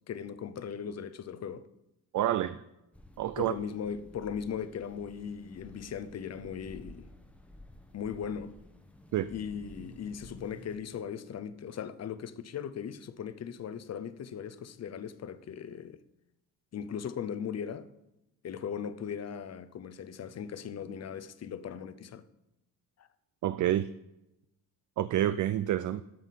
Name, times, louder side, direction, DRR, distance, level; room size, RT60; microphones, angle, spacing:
voice 1, 0.1-1.6 3.4-7.1 7.9-8.5 9.3-16.0 16.7-17.9 18.4-22.2 23.0-23.1, left 7 dB, 45° left, 0.7 m, -38 dB
voice 2, 2.1-2.6 3.2-3.5 9.1-9.3 23.4-23.9 25.0-26.0, right 12 dB, 55° right, 0.4 m, -28 dB
sound 1, 2.9-10.8, left 1 dB, 5° left, 1.0 m, -53 dB
13.0 x 5.6 x 5.8 m
cardioid pair, 130°, 38 cm